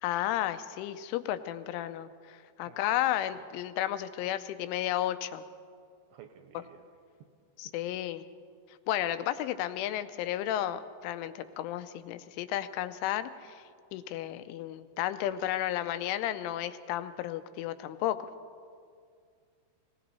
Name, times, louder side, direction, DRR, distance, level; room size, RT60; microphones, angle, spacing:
voice 1, 0.0-5.4 7.6-8.2 8.9-13.6 13.9-18.2, left 12 dB, 85° left, 12 dB, 3.1 m, -33 dB
voice 2, 2.6-3.0 3.3-3.4 6.1-6.8, right 9 dB, 80° right, 6 dB, 2.6 m, -53 dB
19.5 x 18.0 x 4.1 m, 2.2 s
omnidirectional pair, 5.5 m